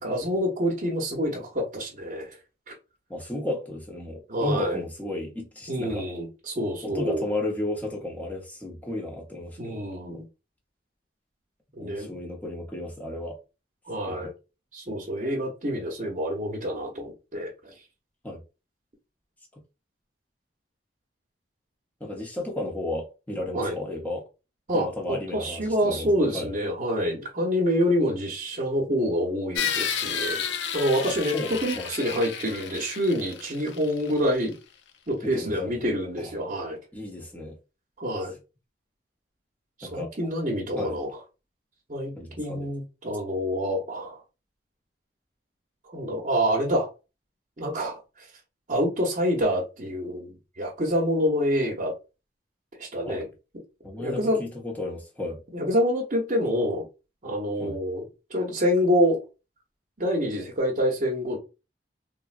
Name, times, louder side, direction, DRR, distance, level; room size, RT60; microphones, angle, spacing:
voice 1, 0.0-2.4 2.7-2.8 4.3-4.8 5.7-7.2 9.6-10.2 11.7-12.2 13.9-14.3 14.7-17.7 23.5-23.8 24.7-30.4 30.7-34.5 35.1-36.8 38.0-38.4 39.8-41.1 41.9-44.2 45.9-46.9 47.6-48.0 48.7-51.9 52.8-53.2 54.0-54.4 55.5-56.9 57.2-58.0 58.3-59.2 60.0-61.4, equal, 40° right, 0.8 m, -27 dB
voice 2, 3.1-6.1 6.8-9.8 10.1-10.2 11.8-13.4 14.1-14.3 18.2-18.4 19.5-19.6 22.0-24.2 24.7-26.5 31.0-31.9 35.2-35.8 36.2-36.3 36.9-37.6 39.8-40.1 40.8-41.0 42.1-42.7 53.1-53.2 53.8-55.4 57.6-57.7, left 1 dB, 10° left, 0.7 m, -34 dB
sound 1, 29.5-34.3, left 7 dB, 80° left, 0.4 m, -31 dB
3.6 x 2.1 x 2.4 m
head